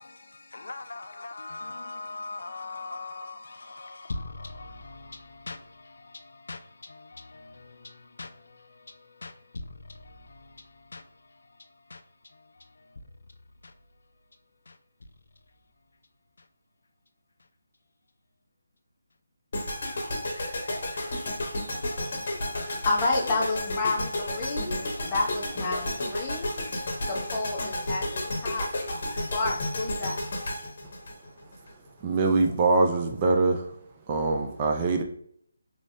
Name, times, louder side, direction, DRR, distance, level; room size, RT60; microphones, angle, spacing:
voice 1, 0.0-13.0 13.6-13.7 14.7-14.8 16.4-16.5, left 3 dB, 75° left, 0.4 m, -42 dB
sound 1, 19.5-31.7, left 1 dB, 50° left, 1.0 m, -32 dB
voice 2, 22.8-24.7 25.0-26.5 27.1-28.7 29.3-30.2, left 2 dB, 20° left, 0.8 m, -29 dB
voice 3, 32.0-35.0, right 3 dB, 20° right, 0.3 m, -24 dB
3.3 x 3.1 x 2.6 m
hypercardioid pair, 170°, 0 cm